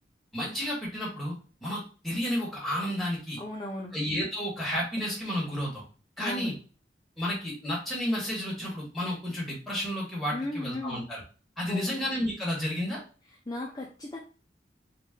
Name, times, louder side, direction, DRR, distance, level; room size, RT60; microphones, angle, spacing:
voice 1, 0.3-1.4 1.6-3.4 3.9-5.8 6.2-6.5 7.2-11.2 11.6-13.0, equal, ahead, -6 dB, 1.6 m, -31 dB
voice 2, 3.4-4.0 6.2-6.5 10.3-11.0 11.7-12.0 13.5-14.2, left 1 dB, 20° left, -2 dB, 0.5 m, -36 dB
4.1 x 2.4 x 3.7 m, 0.37 s
head